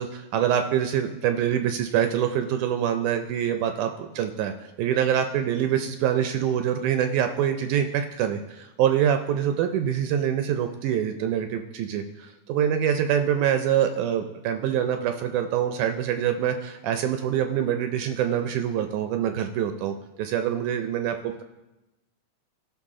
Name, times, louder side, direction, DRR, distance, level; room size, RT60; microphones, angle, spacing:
voice 1, 0.0-21.4, right 9 dB, 80° right, 7 dB, 1.9 m, -25 dB
15.5 x 6.0 x 3.7 m, 0.99 s
omnidirectional pair, 3.8 m